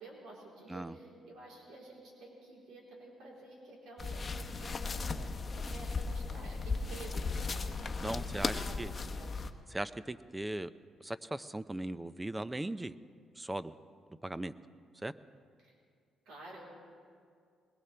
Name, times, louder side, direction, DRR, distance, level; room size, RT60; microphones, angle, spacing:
voice 1, 0.0-9.5 15.6-15.7 16.3-16.6, right 2 dB, 85° right, -4 dB, 3.9 m, -51 dB
sound 1, 4.0-9.5, left 4 dB, 35° left, 0.9 m, -36 dB
voice 2, 8.0-8.9 9.7-10.7 11.0-13.0 13.4-13.7 14.2-14.5 15.0-15.1, right 1 dB, 15° right, 14 dB, 0.5 m, -38 dB
21.0 x 20.5 x 3.4 m, 2.2 s
cardioid pair, 90°, 0 cm